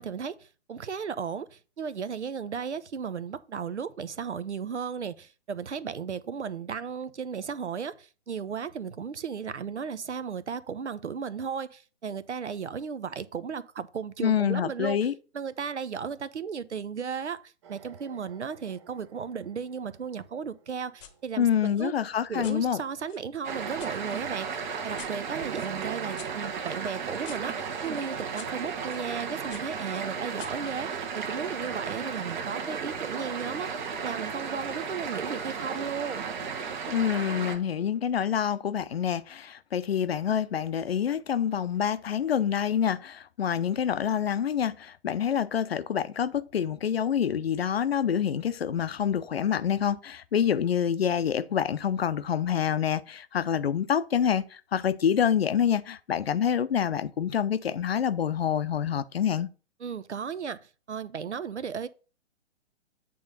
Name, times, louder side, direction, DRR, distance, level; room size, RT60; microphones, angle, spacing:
voice 1, 0.0-15.0 15.3-21.9 22.3-36.3 59.8-60.6 60.9-61.9, right 6 dB, 75° right, 0.7 m, -35 dB
voice 2, 14.2-15.1 21.4-22.8 36.9-59.5, left 8 dB, 60° left, 0.6 m, -27 dB
sound 1, 17.6-21.9 25.4-29.2, right 10 dB, 25° right, 0.6 m, -50 dB
sound 2, 21.0-21.2 21.6-23.9 24.4-29.1 29.5-31.4, left 9 dB, 25° left, 0.9 m, -50 dB
sound 3, 23.4-37.6, right 6 dB, 45° right, 1.2 m, -34 dB
8.6 x 3.7 x 5.4 m
figure-of-eight pair, 125°, 34 cm